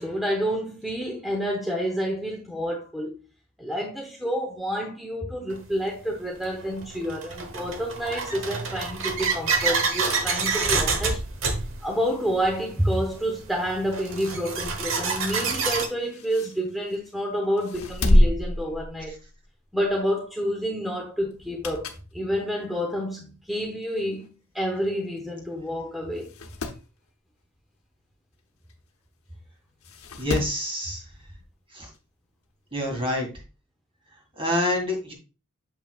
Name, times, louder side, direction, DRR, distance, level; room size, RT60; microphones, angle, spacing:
voice 1, 0.0-3.1 3.6-11.2 11.8-19.2 19.7-26.3, equal, ahead, 0.9 m, -29 dB
sound 1, 5.5-5.6 6.4-15.9, right 4 dB, 65° right, 1.1 m, -28 dB
sound 2, 15.3-17.1 17.6-19.5 19.8-20.0 21.3-22.1 22.6-22.7 23.6-23.7 23.9-24.0 24.2-24.3 25.2-25.4 25.7-25.8 26.2-26.8 28.7-28.8 29.8-30.6 31.9-32.0, left 1 dB, 75° left, 0.9 m, -26 dB
voice 2, 30.2-31.0 31.7-31.9 32.7-33.3 34.4-35.1, left 1 dB, 25° right, 2.1 m, -27 dB
7.1 x 5.6 x 2.4 m
head